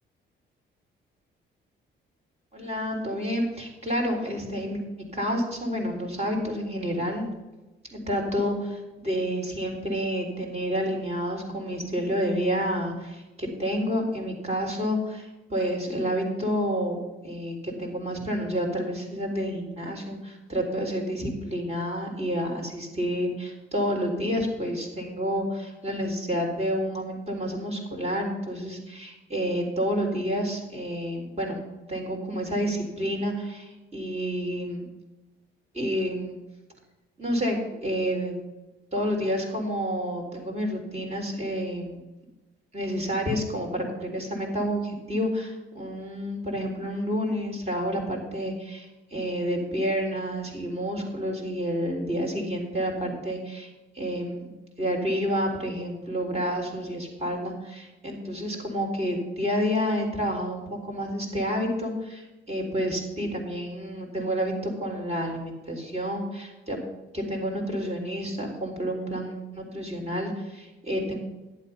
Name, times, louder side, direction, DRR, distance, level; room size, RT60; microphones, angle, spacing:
voice 1, 2.5-4.8 5.1-7.2 7.9-17.0 17.2-31.6 31.9-34.8 35.7-36.4 37.2-38.3 38.9-42.0 42.7-53.7 53.9-54.5 54.8-66.8 67.1-71.2, equal, 30° right, 1 dB, 4.1 m, -29 dB
11.0 x 8.3 x 5.7 m, 1.1 s
cardioid pair, 90°, 20 cm